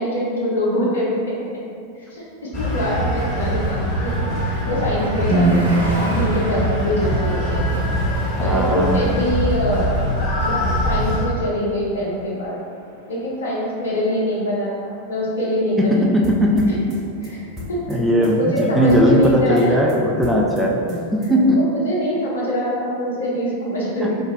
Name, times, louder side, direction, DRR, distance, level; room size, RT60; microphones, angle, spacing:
voice 1, 0.0-1.6 1.9-7.8 8.4-10.1 10.4-12.6 13.1-16.1 16.7-16.8 17.2-17.4 17.7-19.7 21.3-24.1, equal, 65° left, -5 dB, 0.8 m, -24 dB
sound 1, 2.5-11.3, equal, 30° left, 0.8 m, -23 dB
Car passing by, 3.2-14.5, right 1 dB, 70° right, 0.6 m, -36 dB
voice 2, 5.3-5.8 8.4-9.2 15.8-17.0 17.9-21.6 24.0-24.1, equal, 5° right, -2 dB, 0.4 m, -18 dB
sound 2, 16.2-21.5, left 1 dB, 30° right, 0.8 m, -37 dB
3.8 x 2.7 x 2.5 m, 2.4 s
figure-of-eight pair, 90°, 0 cm